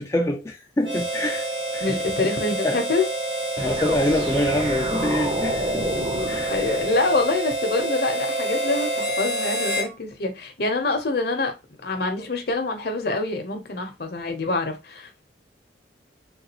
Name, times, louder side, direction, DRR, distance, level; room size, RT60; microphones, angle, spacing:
voice 1, 0.0-1.5 1.7-2.0 2.6-2.8 3.6-6.5, left 1 dB, 15° left, 0.4 m, -25 dB
Harmonica, 0.8-9.9, right 1 dB, 85° right, 1.5 m, -28 dB
voice 2, 1.8-3.1 6.5-11.5 11.8-15.2, left 3 dB, 55° left, 0.8 m, -25 dB
sound 1, 3.6-7.5, equal, 30° right, 0.7 m, -31 dB
3.8 x 2.3 x 2.8 m
head